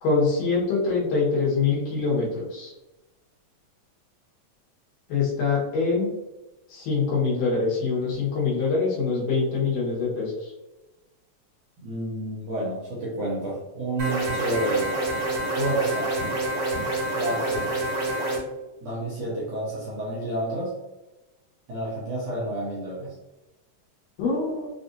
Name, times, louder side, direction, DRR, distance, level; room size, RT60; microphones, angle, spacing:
voice 1, 0.0-2.7 5.1-6.1 6.7-10.5 24.2-24.7, left 4 dB, 70° left, -6 dB, 2.7 m, -24 dB
voice 2, 11.8-14.9 15.5-16.2 17.1-17.7 18.8-20.7 21.7-23.1, right 1 dB, 70° right, -7 dB, 1.5 m, -30 dB
sound 1, 14.0-18.4, right 1 dB, 45° right, 1.3 m, -27 dB
5.9 x 2.6 x 2.6 m, 1.0 s
omnidirectional pair, 4.0 m